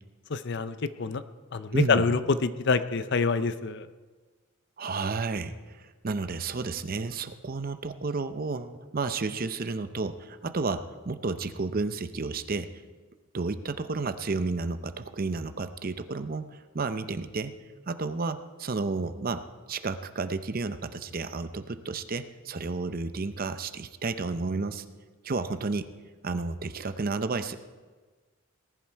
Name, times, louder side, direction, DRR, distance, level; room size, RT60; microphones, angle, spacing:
voice 1, 0.3-1.2 1.5-3.9, left 4 dB, 55° left, 13 dB, 0.6 m, -26 dB
voice 2, 1.7-2.1 4.8-12.8 13.3-17.5 17.9-24.8 25.2-25.9 26.2-27.6, right 3 dB, 45° right, 11 dB, 0.6 m, -32 dB
18.5 x 11.0 x 4.6 m, 1.4 s
head